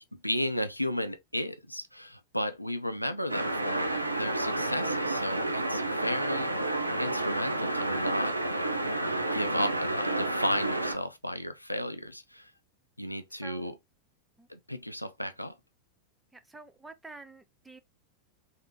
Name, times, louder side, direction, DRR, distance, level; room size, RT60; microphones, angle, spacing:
voice 1, 0.1-6.5 7.0-8.4 9.3-12.5 13.0-13.8 14.5-15.5, left 1 dB, 90° left, 0.4 m, -34 dB
sound 1, 3.3-11.0, right 2 dB, 85° right, 0.4 m, -30 dB
voice 2, 13.3-13.8 14.4-14.5 16.3-17.8, right 3 dB, 5° right, 0.5 m, -49 dB
3.4 x 2.7 x 2.8 m
figure-of-eight pair, 90°, 0 cm